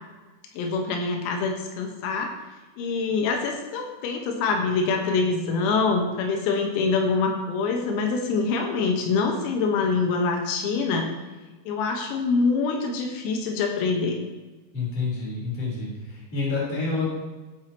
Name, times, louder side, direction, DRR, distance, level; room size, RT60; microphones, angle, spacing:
voice 1, 0.6-2.4 2.8-11.1 11.7-14.2, left 4 dB, 90° left, 2 dB, 4.0 m, -25 dB
voice 2, 14.7-17.1, left 4 dB, 30° left, -5 dB, 4.4 m, -28 dB
13.5 x 10.5 x 2.9 m, 1.2 s
omnidirectional pair, 6.0 m